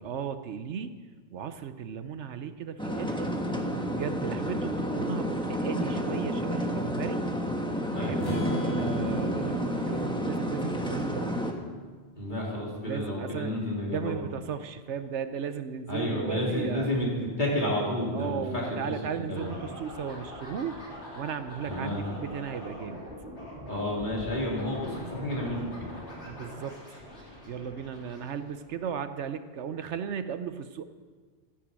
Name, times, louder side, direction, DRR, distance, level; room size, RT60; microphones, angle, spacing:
voice 1, 0.0-1.0 1.3-3.4 3.8-7.3 8.0-11.5 12.8-13.6 13.9-16.9 18.1-20.8 21.1-23.0 26.2-26.8 27.5-30.8, right 7 dB, 75° right, 10 dB, 1.1 m, -36 dB
sound 1, 2.8-11.5, equal, 5° left, 1.3 m, -30 dB
voice 2, 7.9-8.3 12.2-14.2 15.9-17.1 17.4-18.6 19.3-19.5 21.7-22.0 23.7-25.9, left 1 dB, 40° left, -4 dB, 3.8 m, -30 dB
Strum, 8.2-12.1, right 2 dB, 85° left, 5.1 m, -36 dB
sound 2, 19.3-28.9, equal, 65° left, 3.8 m, -44 dB
13.5 x 10.0 x 7.5 m, 1.5 s
omnidirectional pair, 1.2 m